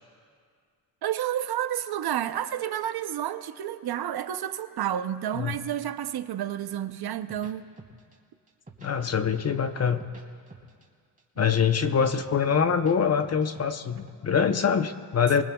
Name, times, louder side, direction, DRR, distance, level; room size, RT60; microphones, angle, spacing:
voice 1, 1.0-7.7, right 11 dB, 60° right, 11 dB, 0.8 m, -30 dB
sound 1, 7.3-8.1 8.5-9.6 9.9-10.8 11.2-13.0 13.2-14.1, right 2 dB, 20° right, 3.0 m, -48 dB
voice 2, 8.8-10.1 11.4-15.4, left 7 dB, 35° left, 9 dB, 0.8 m, -24 dB
25.5 x 19.5 x 2.3 m, 2.1 s
cardioid pair, 90°, 43 cm